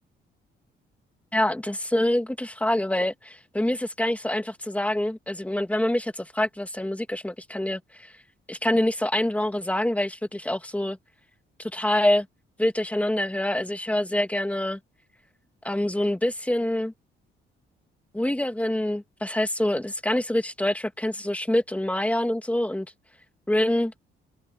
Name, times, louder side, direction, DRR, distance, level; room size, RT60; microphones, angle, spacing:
voice 1, 1.3-8.1 8.5-11.0 11.6-12.3 12.6-14.8 15.6-16.9 18.1-22.9 23.5-23.9, left 1 dB, 5° left, 2.3 m, -26 dB
cardioid pair, 90°, 20 cm